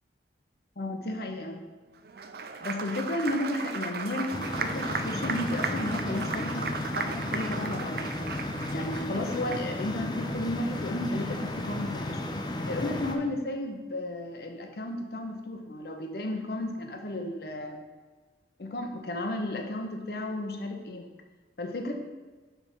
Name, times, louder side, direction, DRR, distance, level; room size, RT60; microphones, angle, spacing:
voice 1, 0.8-1.6 2.6-6.7 6.9-8.2 8.7-12.2 12.7-17.8 18.6-21.1 21.6-21.9, left 1 dB, 60° left, 4 dB, 0.7 m, -33 dB
Applause, 2.0-9.9, right 5 dB, 55° right, 0.4 m, -36 dB
sound 1, 4.3-13.2, left 1 dB, 25° left, 0.5 m, -34 dB
7.1 x 3.5 x 5.9 m, 1.3 s
head